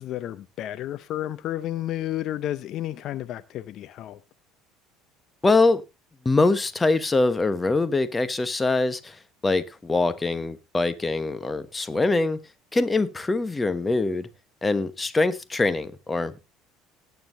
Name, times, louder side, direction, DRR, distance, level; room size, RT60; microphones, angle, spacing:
voice 1, 0.0-4.2, left 13 dB, 55° left, 0.6 m, -31 dB
voice 2, 5.4-5.8 6.2-12.4 12.7-14.3 14.6-16.4, left 3 dB, 20° left, 1.2 m, -23 dB
18.5 x 9.4 x 2.7 m
hypercardioid pair, 65°, 0 cm